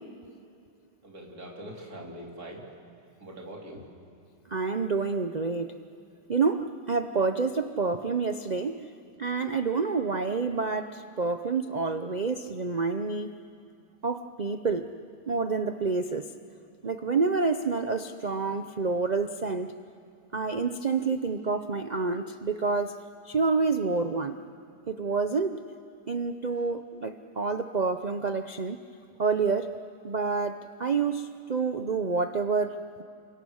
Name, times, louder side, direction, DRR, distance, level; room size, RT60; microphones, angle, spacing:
voice 1, 1.0-2.6 3.2-3.8, right 1 dB, 55° right, -1 dB, 3.8 m, -42 dB
voice 2, 4.5-5.7 6.3-8.8 9.2-13.3 14.0-14.9 15.3-16.3 16.8-19.7 20.3-22.9 23.3-24.4 24.9-25.8 26.1-28.8 29.2-29.7 30.0-33.0, right 4 dB, 80° right, 8 dB, 0.3 m, -28 dB
28.5 x 26.5 x 6.5 m, 2.4 s
omnidirectional pair, 1.9 m